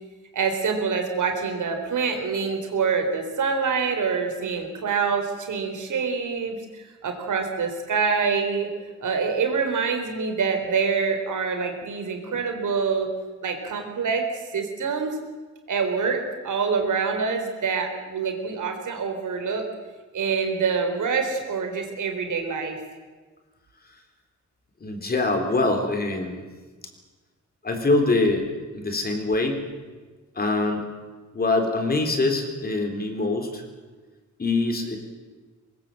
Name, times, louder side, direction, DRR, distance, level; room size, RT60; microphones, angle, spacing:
voice 1, 0.3-8.7 9.0-13.1 13.4-15.2 15.7-19.6 20.1-22.8, right 5 dB, 75° right, 5 dB, 4.1 m, -26 dB
voice 2, 24.8-26.4 27.6-28.4 28.7-29.6 30.4-30.9 31.3-33.6 34.4-35.0, left 2 dB, 30° left, 4 dB, 3.7 m, -24 dB
23.5 x 21.0 x 7.7 m, 1.3 s
wide cardioid pair, 150°, 31 cm